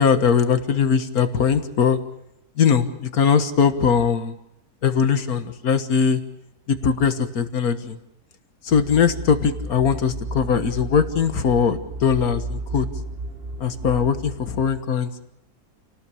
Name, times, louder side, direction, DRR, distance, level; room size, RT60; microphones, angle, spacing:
voice 1, 0.0-2.0 2.6-4.3 4.8-6.2 6.7-8.0 8.6-12.9 13.6-15.2, left 6 dB, 65° left, 10 dB, 1.8 m, -20 dB
sound 1, 8.7-14.5, right 2 dB, 40° right, 1.5 m, -33 dB
28.5 x 18.5 x 7.0 m, 0.83 s
omnidirectional pair, 1.7 m